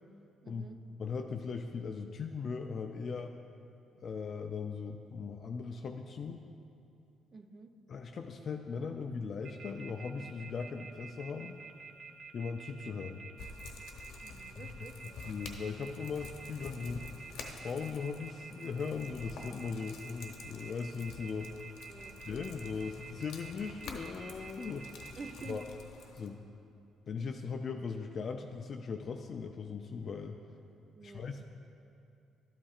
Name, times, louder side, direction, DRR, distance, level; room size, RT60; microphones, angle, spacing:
voice 1, 0.4-0.8 7.3-7.7 14.2-15.2 21.9-22.2 25.2-25.7 30.9-31.3, right 4 dB, 30° right, 7 dB, 0.5 m, -49 dB
voice 2, 1.0-3.3 4.0-6.4 7.9-11.6 12.3-13.2 14.6-14.9 15.2-17.0 17.6-21.5 22.3-24.9 25.5-25.6 26.1-26.4 27.1-30.4 31.0-31.5, left 5 dB, 45° left, 4 dB, 0.3 m, -39 dB
sound 1, 9.4-25.6, right 4 dB, 55° right, 0.8 m, -49 dB
sound 2, 13.4-26.3, left 4 dB, 80° left, 0.9 m, -49 dB
12.5 x 8.6 x 2.4 m, 2.6 s
cardioid pair, 130°, 0 cm